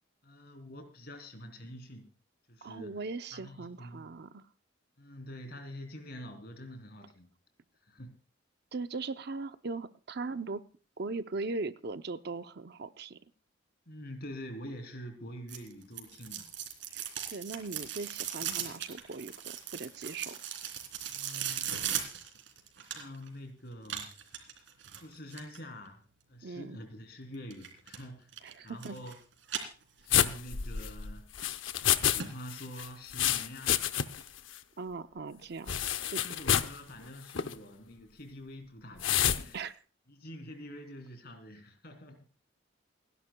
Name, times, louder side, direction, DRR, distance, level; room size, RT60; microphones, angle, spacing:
voice 1, 0.2-2.1 2.5-3.0 3.3-4.1 5.0-7.3 7.8-8.1 13.9-16.5 21.1-21.9 22.8-24.1 25.0-26.0 26.3-28.3 28.6-29.2 30.0-31.3 31.8-33.9 36.0-39.6 40.1-42.3, equal, 55° left, 6 dB, 3.2 m, -46 dB
voice 2, 2.6-4.4 8.7-10.6 11.0-13.2 16.9-20.4 26.4-26.8 28.4-29.0 34.8-36.2 39.5-39.7, right 3 dB, 55° right, 11 dB, 0.7 m, -39 dB
sound 1, 15.5-23.3 23.8-25.6 27.5-28.0 28.3-29.1 29.4-30.3 30.7-30.8 31.4-31.5 31.8-31.9 32.2-32.3 32.7-32.8, right 9 dB, 70° right, 3.1 m, -38 dB
sound 2, 30.1-32.2 32.5-34.3 34.6-34.7 35.7-36.8 37.3-37.5 39.0-39.4, left 10 dB, 80° left, 0.8 m, -28 dB
29.5 x 11.0 x 2.3 m, 0.35 s
head